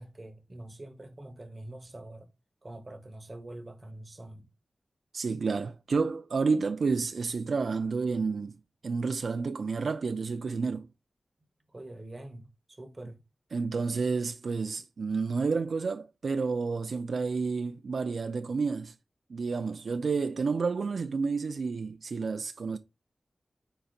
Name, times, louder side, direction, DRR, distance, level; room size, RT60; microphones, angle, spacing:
voice 1, 0.0-2.3 2.6-4.5 11.7-13.2, right 1 dB, 35° right, 1.0 m, -45 dB
voice 2, 5.1-8.6 8.8-10.9 13.5-18.9 19.3-22.8, right 4 dB, 80° right, 0.4 m, -30 dB
5.3 x 4.0 x 2.3 m
wide cardioid pair, 80°, 0 cm